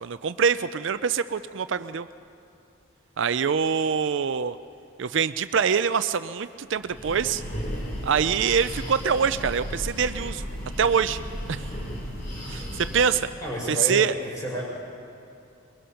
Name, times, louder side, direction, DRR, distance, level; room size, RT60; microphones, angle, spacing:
voice 1, 0.0-2.1 3.2-4.6 5.0-7.4 8.0-10.4 10.8-11.2 11.5-11.7 12.5-13.3 13.7-14.1, right 6 dB, 65° right, 13 dB, 0.4 m, -24 dB
Breathing, 6.8-13.4, equal, 40° left, 2.9 m, -35 dB
voice 2, 13.4-14.6, equal, 15° left, -4 dB, 5.5 m, -31 dB
22.5 x 21.5 x 5.8 m, 2.6 s
head